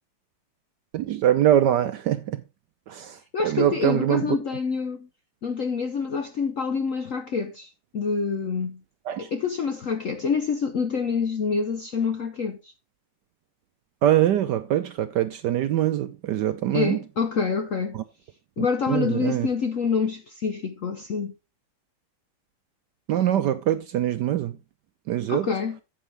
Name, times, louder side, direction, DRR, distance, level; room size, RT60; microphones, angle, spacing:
voice 1, 0.9-2.4 2.9-4.3 9.1-9.3 14.0-17.0 17.9-18.0 18.6-19.5 23.1-24.6 25.1-25.5, right 11 dB, 70° right, 1.0 m, -23 dB
voice 2, 3.3-5.1 5.4-8.8 9.2-12.7 16.7-18.0 18.6-21.3 25.3-25.8, left 5 dB, 65° left, 0.8 m, -27 dB
9.4 x 8.0 x 3.3 m
omnidirectional pair, 2.3 m